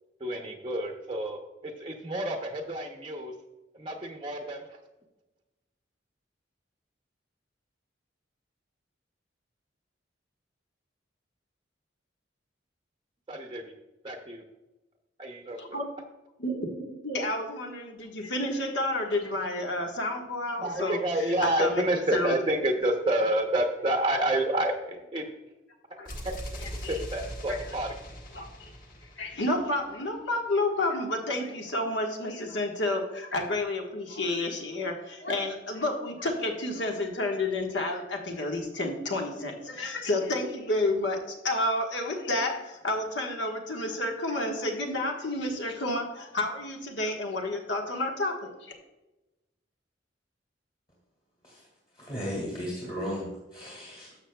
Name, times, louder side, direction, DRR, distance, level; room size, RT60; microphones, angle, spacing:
voice 1, 0.2-3.3 3.7-4.8 13.3-13.7 14.0-14.4 15.2-15.6 20.6-25.3 26.2-26.3 26.7-28.0, right 1 dB, 25° right, 3 dB, 0.7 m, -29 dB
voice 2, 15.6-15.9 16.4-21.0 21.4-22.3 26.0-26.2 26.8-27.0 27.5-27.6 28.3-28.7 29.2-41.2 41.4-48.7, left 2 dB, 70° left, 2 dB, 1.4 m, -30 dB
sound 1, 26.0-29.9, equal, 50° left, 1.5 m, -41 dB
voice 3, 51.9-54.2, equal, 30° left, -3 dB, 1.9 m, -35 dB
12.0 x 7.1 x 2.3 m, 1.0 s
head